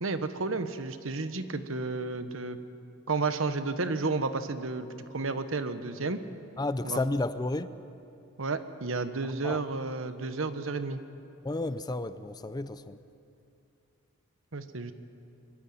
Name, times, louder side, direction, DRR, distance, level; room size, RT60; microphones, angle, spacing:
voice 1, 0.0-2.6 3.1-6.2 6.8-7.0 8.4-11.0 14.5-14.9, right 3 dB, 70° right, 1.1 m, -32 dB
voice 2, 6.6-7.8 9.2-9.6 11.4-13.0, left 2 dB, 20° left, 0.5 m, -32 dB
23.5 x 13.5 x 9.1 m
head